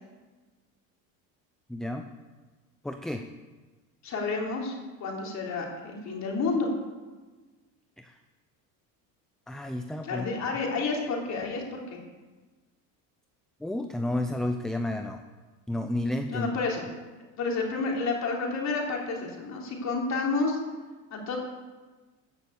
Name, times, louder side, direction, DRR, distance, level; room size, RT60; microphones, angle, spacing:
voice 1, 1.7-2.0 2.8-3.2 8.0-8.1 9.5-10.3 13.6-15.2 15.7-16.5, left 1 dB, ahead, 6 dB, 0.4 m, -31 dB
voice 2, 4.0-4.8 5.0-6.7 10.0-12.0 16.3-16.8 17.4-20.6 21.1-21.4, left 3 dB, 40° left, -1 dB, 3.5 m, -30 dB
14.0 x 6.9 x 8.2 m, 1.3 s
cardioid pair, 130°, 40 cm